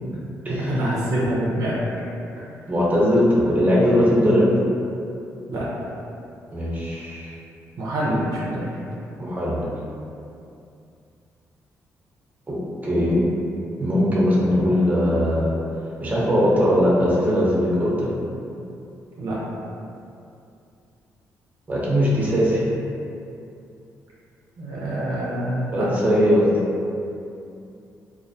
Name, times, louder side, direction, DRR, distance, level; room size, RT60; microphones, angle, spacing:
voice 1, 0.5-1.8 5.5-5.7 7.8-8.7 19.2-19.4 24.6-25.9, right 1 dB, 70° right, -7 dB, 0.5 m, -25 dB
voice 2, 2.7-4.5 6.5-7.3 9.2-9.7 12.5-12.6 12.8-13.2 13.8-15.6 16.0-18.1 21.7-22.6 25.7-26.5, equal, 25° right, -6 dB, 0.7 m, -20 dB
2.3 x 2.1 x 2.5 m, 2.6 s
supercardioid pair, 60°, 6 cm